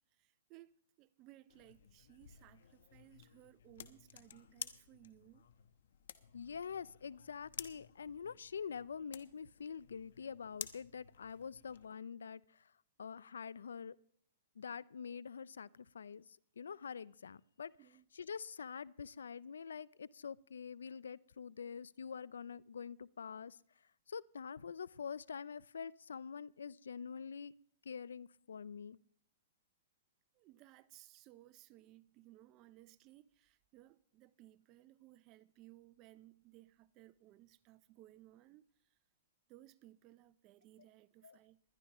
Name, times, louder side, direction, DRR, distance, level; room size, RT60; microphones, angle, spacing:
voice 1, 0.1-0.7 1.0-5.5 17.8-18.0 30.3-38.6 39.5-41.6, right 16 dB, 35° right, 0.5 m, -61 dB
sound 1, 1.5-11.9, left 9 dB, 70° left, 1.0 m, -53 dB
voice 2, 6.3-12.7 13.0-14.0 14.6-16.3 16.6-17.7 18.1-23.6 24.1-27.5 27.8-29.0 41.2-41.4, left 6 dB, 90° left, 0.4 m, -46 dB
20.5 x 11.5 x 3.0 m
hypercardioid pair, 140°, 0 cm